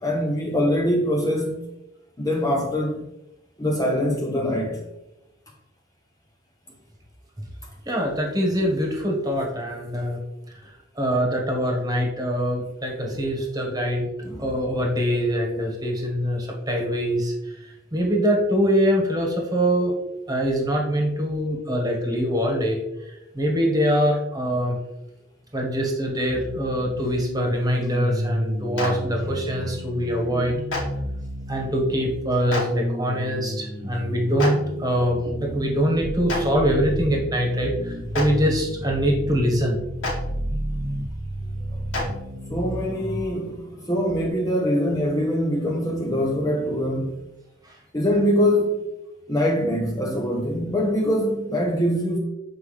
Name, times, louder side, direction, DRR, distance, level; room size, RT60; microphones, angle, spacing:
voice 1, 0.0-1.7 2.2-3.0 3.6-4.8 14.2-14.5 42.5-47.2 47.9-48.8 49.3-52.2, equal, 20° left, 0.7 m, -23 dB
voice 2, 7.8-10.2 10.6-10.7 11.0-14.1 14.4-19.9 20.3-24.8 25.5-30.6 31.5-39.8 41.7-41.8 47.6-47.7, equal, 20° right, 1.4 m, -24 dB
sound 1, 26.3-43.2, equal, 45° right, 1.0 m, -32 dB
Clapping, 28.8-28.9 30.7-30.8 32.5-32.6 34.4-34.5 36.3-36.4 38.1-38.2 40.0-40.1 41.9-42.0, left 2 dB, 80° left, 2.2 m, -26 dB
7.6 x 4.7 x 3.3 m
head